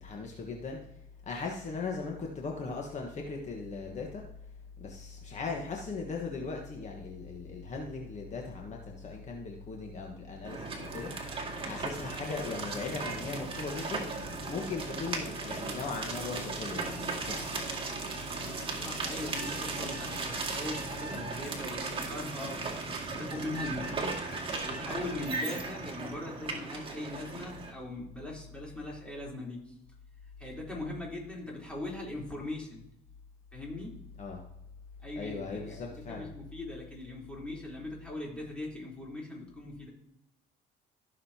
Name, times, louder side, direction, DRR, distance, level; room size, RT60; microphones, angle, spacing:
voice 1, 0.0-0.8 1.2-4.2 4.8-14.1 14.5-17.7 34.2-34.4 35.1-36.3, left 4 dB, 45° left, 1 dB, 1.4 m, -38 dB
sound 1, 10.4-27.7, right 3 dB, 30° right, 2.2 m, -37 dB
voice 2, 18.7-22.7 23.1-29.7 30.4-32.8 33.5-33.9 35.0-39.9, left 2 dB, 5° left, -4 dB, 3.7 m, -40 dB
15.0 x 6.6 x 2.9 m, 0.78 s
cardioid pair, 110°, 17 cm